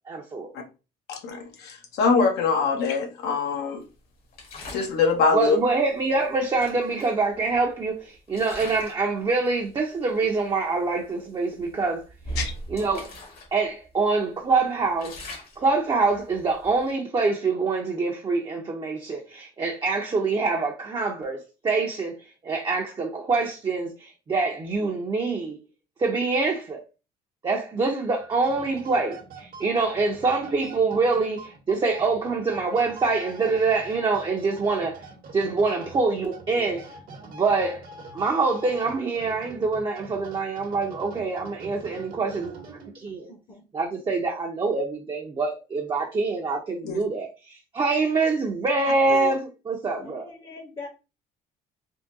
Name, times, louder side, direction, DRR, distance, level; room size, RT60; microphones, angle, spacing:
voice 1, 0.1-0.5 5.3-12.0 12.7-13.1 13.5-15.2 15.6-22.2 22.4-25.6 26.0-26.8 27.4-35.0 35.3-36.9 37.3-37.8 38.1-42.5 42.9-43.3 43.7-50.3, right 3 dB, 25° right, 0.5 m, -25 dB
voice 2, 1.1-3.8 4.7-5.6 12.4-12.5 46.8-47.0 49.1-49.3, left 4 dB, 85° left, 0.8 m, -24 dB
sound 1, 4.3-5.0 6.1-6.2 6.6-7.8 8.3-9.1 9.4-9.7 10.4-10.5 10.8-11.0 11.6-13.5 13.8-13.9 14.4-16.9, right 1 dB, 65° left, 1.2 m, -39 dB
sound 2, 28.2-43.2, right 3 dB, 60° right, 0.9 m, -44 dB
voice 3, 43.3-43.6 50.0-50.9, left 3 dB, 35° left, 0.7 m, -42 dB
3.5 x 2.2 x 2.6 m
cardioid pair, 110°, 17 cm